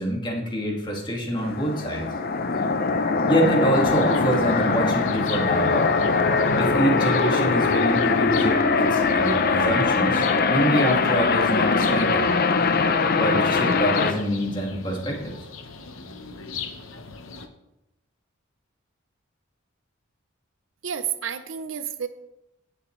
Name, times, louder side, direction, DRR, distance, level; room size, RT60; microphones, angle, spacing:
voice 1, 0.0-2.1 3.3-5.9 6.6-12.3 13.2-15.5, right 1 dB, 25° left, -1 dB, 2.1 m, -26 dB
sound 1, 1.4-14.1, left 4 dB, 50° left, 0.7 m, -22 dB
sound 2, 3.7-17.5, left 5 dB, 75° left, 1.0 m, -39 dB
voice 2, 20.8-22.1, right 8 dB, 65° right, 11 dB, 0.6 m, -30 dB
17.5 x 6.8 x 3.2 m, 0.87 s
head